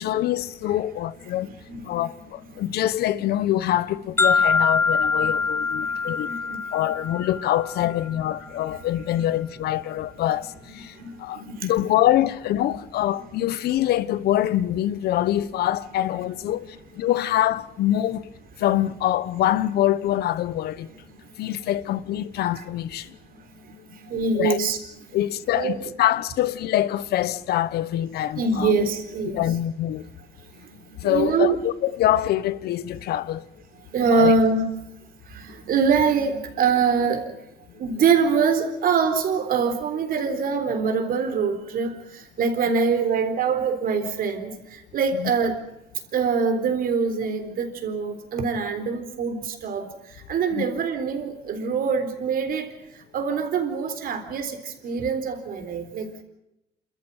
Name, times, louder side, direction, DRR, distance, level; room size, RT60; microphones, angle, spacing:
voice 1, 0.0-1.5 1.8-6.3 6.7-18.3 18.6-20.9 21.4-23.1 24.3-24.6 25.1-28.7 29.3-30.1 31.0-33.5 34.1-34.3 45.1-45.3 50.5-50.6, left 13 dB, 70° left, 1.1 m, -25 dB
voice 2, 1.6-2.0 2.5-2.6 5.2-5.3 5.8-6.6 10.9-11.7 21.2-21.4 22.6-22.7 23.3-24.8 25.5-25.8 28.3-29.4 30.6-31.6 33.9-34.6 35.2-37.3 37.7-45.5 46.1-56.2, right 5 dB, 60° right, 3.9 m, -24 dB
sound 1, 4.2-8.2, left 4 dB, 15° left, 1.3 m, -24 dB
28.5 x 14.0 x 9.0 m
cardioid pair, 110°, 17 cm